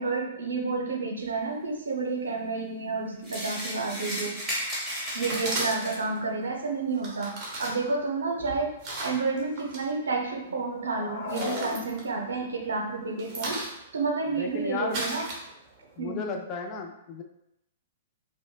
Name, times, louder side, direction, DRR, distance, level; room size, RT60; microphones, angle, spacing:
voice 1, 0.0-4.3 5.1-7.3 7.6-8.7 9.0-13.6 13.9-15.2 16.0-16.2, right 4 dB, 75° right, 2 dB, 0.6 m, -30 dB
sound 1, 3.2-6.2, equal, 5° right, 1.3 m, -34 dB
voice 2, 5.3-5.7 14.4-15.0 16.0-17.2, left 4 dB, 35° left, 3 dB, 0.5 m, -34 dB
sound 2, 5.3-6.1 6.9-9.8 10.2-10.8 11.1-12.6 12.9-15.9, right 2 dB, 35° right, 1.0 m, -36 dB
sound 3, 10.8-12.5, left 4 dB, 55° left, 0.9 m, -36 dB
5.0 x 2.1 x 2.3 m, 0.82 s
figure-of-eight pair, 110°, 0 cm